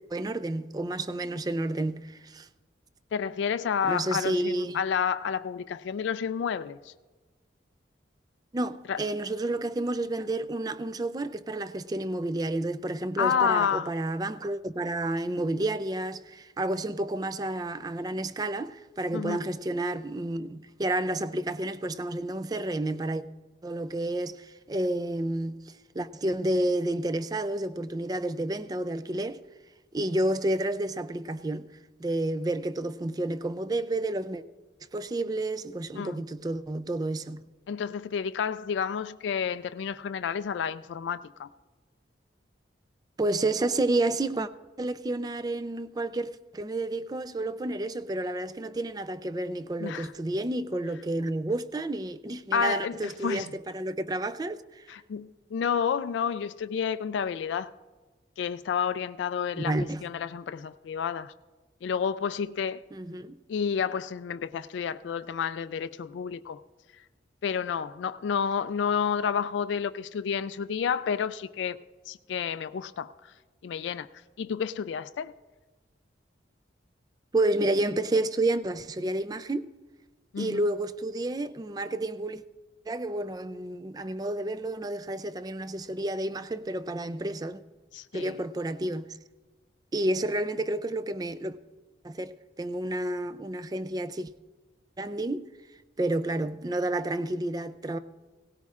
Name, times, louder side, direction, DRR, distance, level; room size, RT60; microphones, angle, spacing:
voice 1, 0.1-2.5 3.8-4.8 8.5-23.2 23.6-29.4 29.9-34.4 34.9-37.5 43.2-44.5 44.8-53.5 53.7-54.9 59.6-60.0 62.9-63.4 77.3-79.7 80.4-82.4 82.9-87.6 88.1-89.2 89.9-91.6 92.0-92.3 92.6-94.3 95.0-95.5 96.0-98.0, right 1 dB, 20° right, 0.3 m, -30 dB
voice 2, 3.1-6.9 8.9-9.0 13.2-13.9 19.1-19.4 35.9-36.2 37.7-41.5 49.8-50.1 52.5-53.5 54.9-57.7 58.4-61.3 61.8-62.8 63.5-66.6 67.4-71.8 72.1-73.3 73.6-74.1 74.4-75.3 80.3-80.6 87.9-88.4, left 7 dB, 75° left, 0.3 m, -30 dB
17.5 x 17.0 x 2.4 m
head